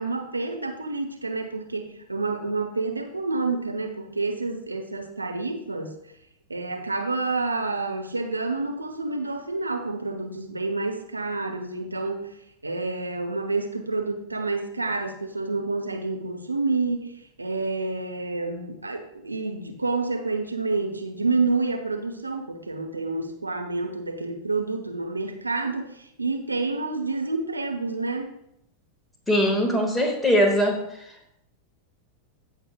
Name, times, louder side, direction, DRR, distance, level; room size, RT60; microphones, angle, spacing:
voice 1, 0.0-5.9 6.5-12.4 12.6-28.3, right 3 dB, 80° right, 4 dB, 0.9 m, -28 dB
voice 2, 29.3-30.8, equal, 5° left, 1 dB, 1.8 m, -21 dB
15.5 x 6.4 x 2.3 m, 0.78 s
figure-of-eight pair, 90°, 0 cm